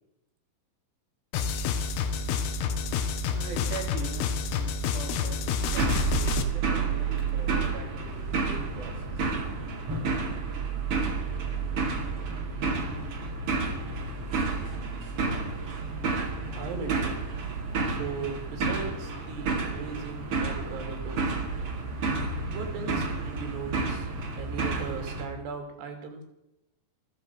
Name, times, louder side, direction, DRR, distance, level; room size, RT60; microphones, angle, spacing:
sound 1, 1.3-6.4, left 5 dB, 75° left, 3.0 m, -29 dB
voice 1, 2.6-9.3, right 6 dB, 55° right, -1 dB, 5.2 m, -43 dB
sound 2, 5.6-25.3, right 4 dB, 40° right, 2.6 m, -30 dB
voice 2, 16.5-17.2 17.9-21.4 22.5-24.1 24.4-26.2, right 5 dB, 70° right, 5 dB, 4.8 m, -38 dB
14.5 x 14.0 x 6.1 m, 0.90 s
omnidirectional pair, 5.0 m